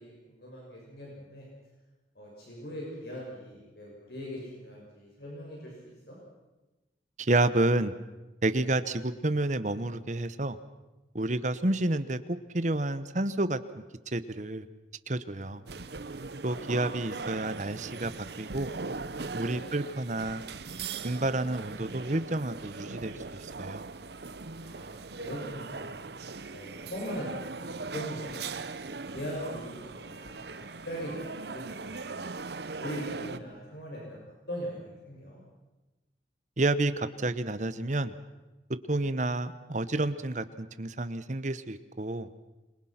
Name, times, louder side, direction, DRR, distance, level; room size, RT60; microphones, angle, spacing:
voice 1, 0.0-1.5 2.1-5.7 6.1-6.2 15.4-16.0 19.4-19.6 24.5-28.5 29.1-32.3 32.7-35.4 38.9-39.1, equal, 65° left, -3 dB, 6.4 m, -41 dB
voice 2, 7.2-7.9 8.4-10.6 11.1-13.6 14.1-14.6 15.1-15.6 16.4-18.1 18.4-18.7 19.3-20.4 21.0-23.8 36.6-38.1 38.9-42.3, right 2 dB, 40° right, 13 dB, 1.1 m, -29 dB
sound 1, 15.7-33.4, right 4 dB, 65° right, 0.9 m, -40 dB
27.0 x 23.0 x 5.9 m, 1.1 s
head